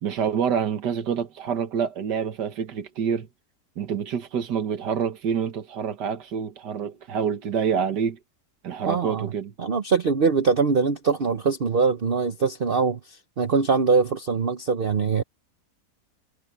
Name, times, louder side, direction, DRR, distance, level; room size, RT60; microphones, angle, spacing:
voice 1, 0.0-3.3 3.8-8.2 8.6-9.5, right 7 dB, 90° right, 2.0 m, -27 dB
voice 2, 8.9-9.3 9.6-15.2, right 5 dB, 45° right, 0.8 m, -23 dB
omnidirectional pair, 1.8 m